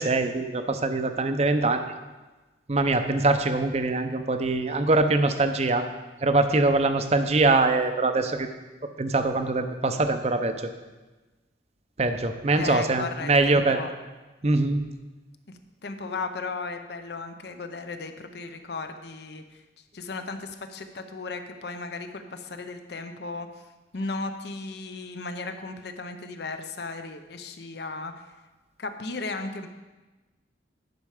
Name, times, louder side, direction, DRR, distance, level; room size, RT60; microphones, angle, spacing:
voice 1, 0.0-1.8 2.7-5.9 6.2-8.5 9.0-10.5 12.0-13.8 14.4-14.8, right 2 dB, 35° right, 8 dB, 0.6 m, -23 dB
voice 2, 12.5-13.9 15.5-28.3 28.8-29.7, left 3 dB, 60° left, 8 dB, 0.7 m, -36 dB
10.5 x 5.6 x 4.9 m, 1.2 s
head